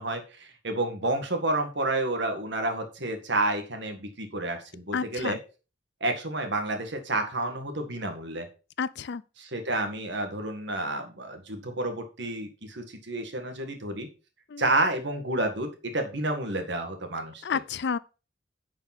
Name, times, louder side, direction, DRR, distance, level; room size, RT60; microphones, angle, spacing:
voice 1, 0.0-5.4 6.0-8.5 9.4-14.1 14.6-17.4, right 2 dB, 65° right, 1.9 m, -30 dB
voice 2, 4.9-5.4 8.8-9.2 14.5-14.7 17.4-18.0, left 6 dB, 65° left, 0.5 m, -30 dB
10.5 x 5.2 x 6.0 m
head